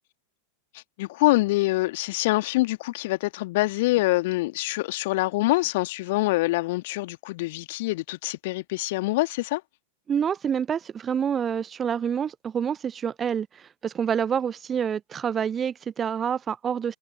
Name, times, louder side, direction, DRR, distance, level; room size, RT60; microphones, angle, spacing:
voice 1, 1.0-9.6, left 20 dB, 50° left, 2.0 m, -25 dB
voice 2, 10.1-17.0, right 8 dB, 20° right, 0.4 m, -27 dB
figure-of-eight pair, 90°, 0 cm